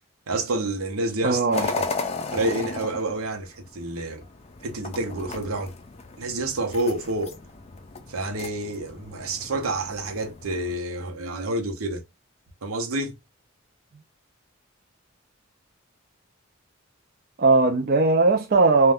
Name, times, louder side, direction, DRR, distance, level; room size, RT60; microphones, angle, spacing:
voice 1, 0.3-1.9 2.3-4.2 4.6-5.7 6.2-7.4 8.1-12.0 12.6-13.1, right 2 dB, 85° right, 0.7 m, -28 dB
voice 2, 1.2-1.7 17.4-18.9, right 3 dB, 45° right, 0.4 m, -18 dB
sound 1, 1.5-10.8, left 4 dB, 30° left, 0.4 m, -35 dB
2.5 x 2.2 x 3.4 m
head